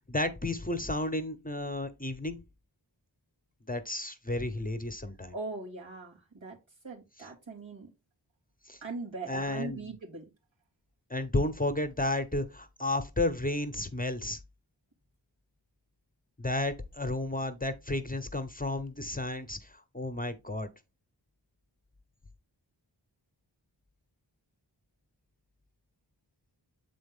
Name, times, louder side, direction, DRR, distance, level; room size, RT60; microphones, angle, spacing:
voice 1, 0.1-2.4 3.7-5.3 8.7-8.8 9.3-9.8 11.1-14.4 16.4-20.7, left 2 dB, 20° left, 0.9 m, -32 dB
voice 2, 5.3-7.9 8.8-10.3, right 3 dB, 85° right, 2.6 m, -41 dB
7.5 x 4.1 x 3.6 m
wide cardioid pair, 45°, 45 cm